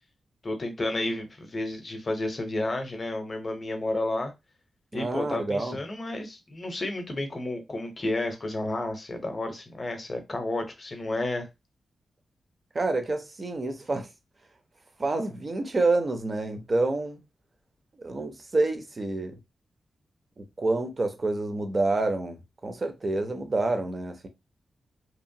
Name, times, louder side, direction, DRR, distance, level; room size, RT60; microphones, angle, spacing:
voice 1, 0.4-4.3 4.9-11.5, left 2 dB, 25° left, 0.6 m, -31 dB
voice 2, 4.9-5.8 12.7-14.1 15.0-17.2 18.0-19.4 20.4-24.3, right 2 dB, 30° right, 0.5 m, -28 dB
2.8 x 2.1 x 2.6 m
wide cardioid pair, 165°, 0 cm